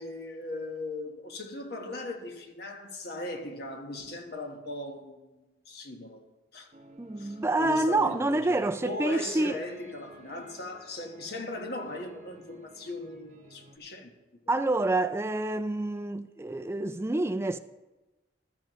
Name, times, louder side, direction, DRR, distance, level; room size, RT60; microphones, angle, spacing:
voice 1, 0.0-6.3 6.5-6.7 7.2-14.1, left 2 dB, 60° left, 1.4 m, -38 dB
sound 1, 6.7-13.8, right 2 dB, 40° right, 1.0 m, -55 dB
voice 2, 7.0-9.6 14.5-17.6, right 2 dB, 15° right, 0.3 m, -27 dB
14.5 x 12.0 x 3.1 m
head